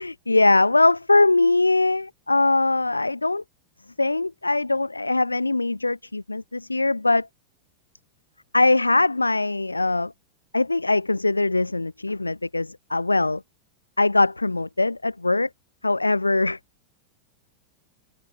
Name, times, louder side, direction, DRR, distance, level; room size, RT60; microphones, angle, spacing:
voice 1, 0.0-3.4 4.0-7.3 8.5-10.1 10.5-13.4 14.0-15.5 15.8-16.6, left 2 dB, 80° left, 0.6 m, -21 dB
figure-of-eight pair, 90°, 0 cm